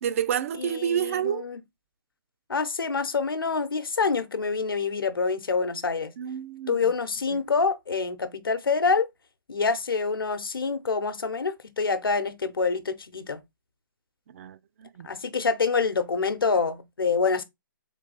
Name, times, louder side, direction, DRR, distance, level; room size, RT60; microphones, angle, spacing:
voice 1, 0.0-1.4 6.2-6.8 14.3-14.6 15.0-15.1, right 9 dB, 40° right, 0.3 m, -28 dB
voice 2, 0.6-1.6 2.5-6.1 6.7-9.1 9.5-13.4 15.0-17.4, left 4 dB, 80° left, 0.8 m, -26 dB
3.9 x 2.9 x 3.9 m
figure-of-eight pair, 140°, 12 cm